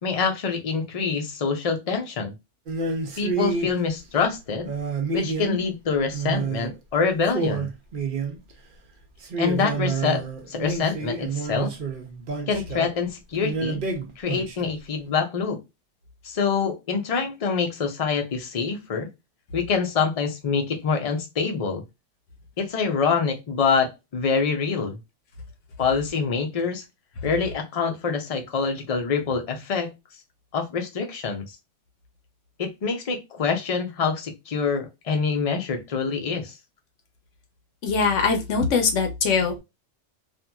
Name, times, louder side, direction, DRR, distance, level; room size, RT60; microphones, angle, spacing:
voice 1, 0.0-2.3 3.2-4.7 5.1-7.7 9.4-10.2 10.5-11.7 12.5-13.8 14.2-15.6 16.2-19.1 19.5-21.8 22.6-25.0 25.8-26.8 27.2-29.9 30.5-31.4 32.6-36.5, left 5 dB, 40° left, 0.6 m, -25 dB
sound 1, 2.7-3.7 4.6-5.7 6.1-6.7 7.0-7.1 7.3-8.5 9.2-12.9 13.4-14.7, right 4 dB, 50° right, 0.7 m, -28 dB
voice 2, 37.8-39.6, left 5 dB, 90° left, 1.1 m, -22 dB
2.9 x 2.5 x 2.2 m
omnidirectional pair, 1.2 m